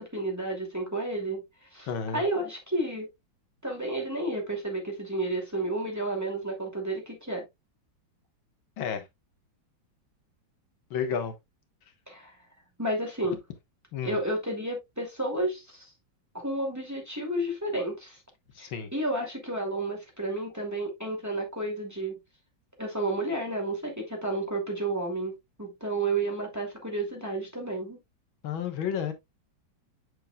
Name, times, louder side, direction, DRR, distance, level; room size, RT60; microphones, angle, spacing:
voice 1, 0.0-1.4 1.7-3.1 3.6-7.5 12.1-12.3 12.8-13.4 14.0-15.9 16.3-18.2 18.6-22.2 22.8-25.3 25.6-28.0, right 2 dB, 10° right, 2.3 m, -31 dB
voice 2, 1.9-2.2 8.8-9.0 10.9-11.3 13.9-14.2 18.6-18.9 28.4-29.1, left 7 dB, 85° left, 2.0 m, -31 dB
7.7 x 6.3 x 2.3 m
omnidirectional pair, 2.1 m